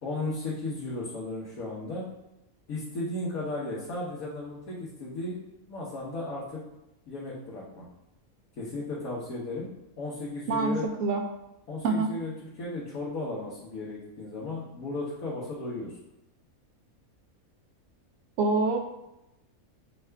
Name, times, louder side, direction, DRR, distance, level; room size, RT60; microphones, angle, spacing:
voice 1, 0.0-2.1 2.7-5.4 5.7-6.6 7.1-7.8 8.6-9.7 10.0-10.8 11.7-12.3 12.6-15.9, left 2 dB, 80° left, -7 dB, 1.4 m, -35 dB
voice 2, 18.4-18.8, right 3 dB, 70° right, 3 dB, 0.9 m, -25 dB
5.4 x 2.4 x 3.3 m, 0.91 s
omnidirectional pair, 1.5 m